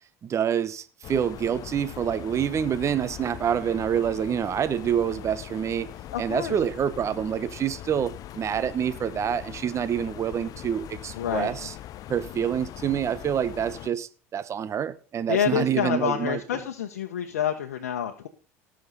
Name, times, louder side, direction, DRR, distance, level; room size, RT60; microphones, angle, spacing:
voice 1, 0.2-5.9 6.2-11.7 12.1-16.4, right 8 dB, 35° right, 1.0 m, -27 dB
sound 1, 1.0-13.9, left 13 dB, 50° left, 0.5 m, -41 dB
voice 2, 6.1-6.5 11.1-11.5 15.3-18.3, left 9 dB, 85° left, 1.0 m, -27 dB
18.0 x 6.4 x 4.0 m
hypercardioid pair, 80°, 8 cm